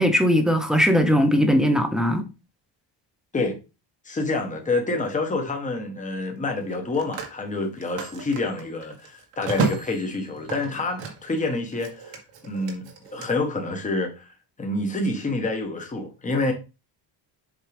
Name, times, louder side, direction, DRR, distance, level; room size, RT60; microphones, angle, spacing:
voice 1, 0.0-2.2, equal, ahead, 0.7 m, -19 dB
voice 2, 4.0-12.9 13.1-14.3 14.6-16.5, left 2 dB, 15° left, 1.3 m, -27 dB
Telephone, 4.4-4.6 6.6-11.4 11.7-13.3, right 5 dB, 85° right, 1.7 m, -33 dB
7.3 x 4.6 x 3.5 m
cardioid pair, 175°, 43 cm